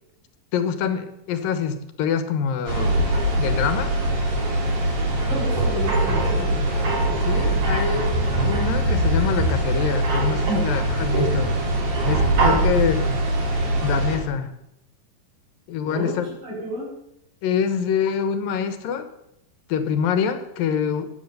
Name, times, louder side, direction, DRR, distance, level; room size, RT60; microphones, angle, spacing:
voice 1, 0.5-3.0 3.4-4.0 7.2-11.5 12.1-13.1 13.8-14.6 15.7-16.2 17.4-19.1 19.7-21.1, left 7 dB, 85° left, 10 dB, 2.9 m, -25 dB
sound 1, 2.7-14.2, right 1 dB, 45° right, 3.9 m, -22 dB
voice 2, 5.3-6.6 12.3-12.8 15.9-16.1 16.4-16.9, right 1 dB, 75° right, -3 dB, 8.3 m, -31 dB
15.0 x 10.5 x 6.8 m, 0.82 s
omnidirectional pair, 3.9 m